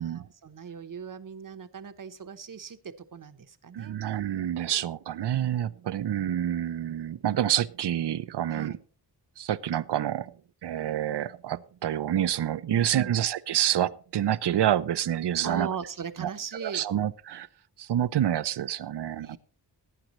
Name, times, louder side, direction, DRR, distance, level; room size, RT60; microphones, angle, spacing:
voice 1, 0.0-4.0 8.5-8.8 12.7-13.1 15.4-16.9 19.1-19.4, right 6 dB, 50° right, 0.9 m, -39 dB
voice 2, 3.7-8.8 9.4-10.3 10.6-15.7 16.2-16.3 16.6-17.5 17.8-19.4, right 11 dB, 80° right, 0.6 m, -28 dB
18.0 x 9.1 x 3.0 m
wide cardioid pair, 90°, 41 cm